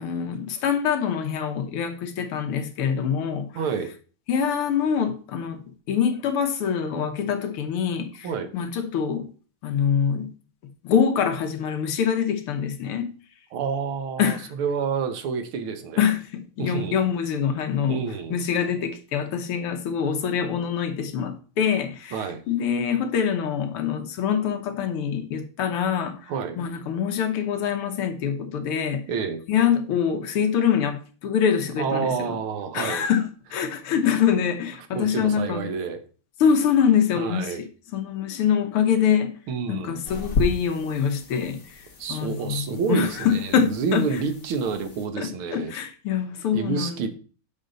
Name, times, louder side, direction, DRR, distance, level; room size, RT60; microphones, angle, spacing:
voice 1, 0.0-3.5 4.3-9.3 9.6-10.3 10.8-13.1 14.2-14.5 16.0-18.0 18.3-26.2 26.6-29.0 29.5-32.4 32.7-35.7 36.4-37.7 37.9-39.3 39.7-41.8 42.1-44.1 45.2-47.1, left 7 dB, 80° left, 1.9 m, -25 dB
voice 2, 3.6-3.9 8.2-8.5 13.5-16.1 16.6-17.1 17.9-18.4 22.1-22.4 26.3-26.6 29.1-29.4 31.8-33.1 34.9-36.0 37.2-37.6 39.5-40.0 42.0-45.7 46.5-47.1, right 6 dB, 75° right, 1.8 m, -28 dB
sound 1, 40.0-45.1, left 3 dB, 50° left, 2.0 m, -33 dB
7.9 x 5.7 x 3.9 m
omnidirectional pair, 2.4 m